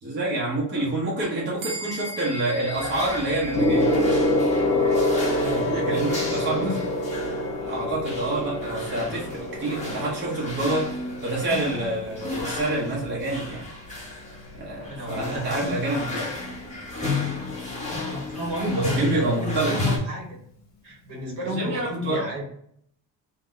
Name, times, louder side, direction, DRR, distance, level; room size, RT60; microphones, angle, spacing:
voice 1, 0.0-3.9 5.5-6.7 7.7-10.9 11.2-13.7 14.5-16.3 18.7-19.7 21.4-22.3, right 2 dB, 25° right, -5 dB, 0.9 m, -27 dB
sound 1, 1.6-11.3, equal, 75° right, 0.8 m, -42 dB
sound 2, 2.7-20.0, left 2 dB, 15° left, 0.8 m, -33 dB
Gong, 3.5-13.3 14.2-14.5, left 1 dB, 40° left, 1.0 m, -26 dB
voice 2, 5.4-6.8 14.9-15.8 18.1-20.4 20.8-22.4, equal, 50° right, -1 dB, 1.1 m, -31 dB
2.7 x 2.2 x 3.7 m, 0.66 s
cardioid pair, 155°, 45 cm